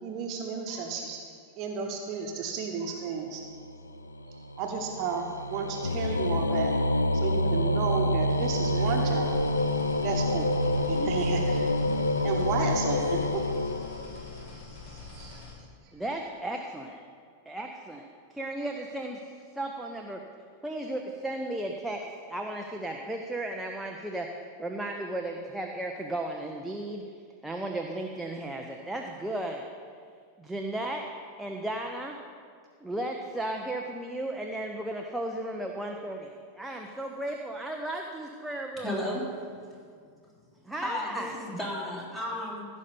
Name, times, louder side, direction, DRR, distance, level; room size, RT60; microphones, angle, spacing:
voice 1, 0.0-1.2 1.6-3.4 4.6-6.7 7.1-9.4 10.0-11.7 12.2-13.4 13.8-13.9 15.1-15.4, right 5 dB, 40° right, 2 dB, 1.2 m, -33 dB
sound 1, 3.5-14.5, left 1 dB, 80° left, 0.4 m, -27 dB
sound 2, 8.3-15.5, left 4 dB, 45° left, 2.7 m, -45 dB
voice 2, 15.9-17.0 17.5-20.2 20.6-22.0 22.3-27.0 27.4-29.6 30.4-31.0 31.4-32.2 32.8-39.0 40.7-41.4, right 1 dB, 5° right, 1 dB, 0.7 m, -35 dB
voice 3, 38.8-39.2 40.8-42.7, left 1 dB, 15° left, -5 dB, 3.4 m, -33 dB
15.5 x 5.4 x 6.9 m, 2.1 s
figure-of-eight pair, 90°, 0 cm